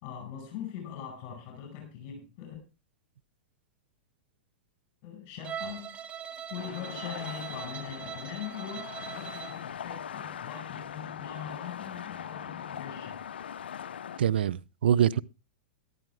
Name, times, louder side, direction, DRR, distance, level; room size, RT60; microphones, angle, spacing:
voice 1, 0.0-2.6 5.0-6.0 6.5-13.3, left 8 dB, 45° left, 5.1 m, -41 dB
Bowed string instrument, 5.4-9.7, right 8 dB, 25° right, 1.3 m, -41 dB
sound 1, 6.6-14.2, left 8 dB, 85° left, 0.6 m, -41 dB
voice 2, 14.2-15.2, right 9 dB, 80° right, 0.6 m, -24 dB
13.5 x 12.5 x 3.4 m
hypercardioid pair, 120°, 5 cm